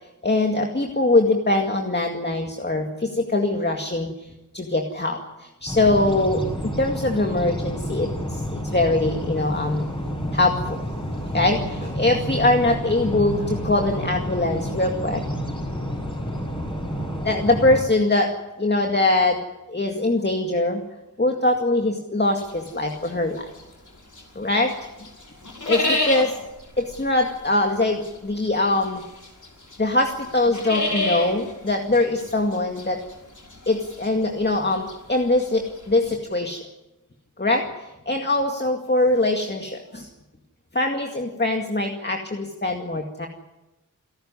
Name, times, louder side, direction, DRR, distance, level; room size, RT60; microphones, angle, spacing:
voice 1, 0.2-4.3 4.5-6.4 6.8-9.9 10.3-10.8 11.3-15.2 17.2-18.3 18.6-19.4 19.7-20.8 21.2-23.5 24.4-24.7 25.7-26.3 26.8-29.0 29.8-33.0 33.7-36.6 37.4-37.7 38.1-40.1 40.7-43.3, left 2 dB, 30° left, 2 dB, 2.2 m, -22 dB
sound 1, 5.7-17.8, equal, 15° left, 6.6 m, -29 dB
sound 2, 22.4-24.4 24.7-36.2, left 2 dB, 60° left, 5.7 m, -30 dB
28.5 x 13.0 x 9.8 m, 0.99 s
wide cardioid pair, 75°, 33 cm